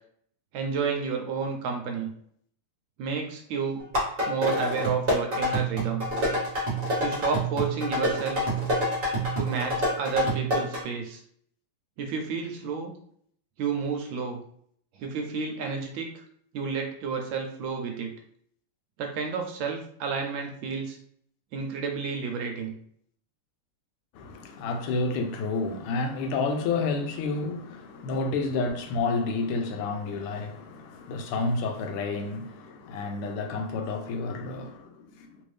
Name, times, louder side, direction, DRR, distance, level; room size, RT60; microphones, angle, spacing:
voice 1, 0.5-2.1 3.0-3.8 4.3-6.0 7.0-8.4 9.4-11.2 12.0-12.9 13.6-14.4 15.0-16.2 16.5-18.1 19.0-21.0 21.5-22.7, right 5 dB, 75° right, 1.3 m, -31 dB
sound 1, 3.8-10.8, equal, 35° right, 1.1 m, -27 dB
voice 2, 24.1-35.4, left 3 dB, 85° left, 1.5 m, -30 dB
3.6 x 2.6 x 3.2 m
omnidirectional pair, 2.4 m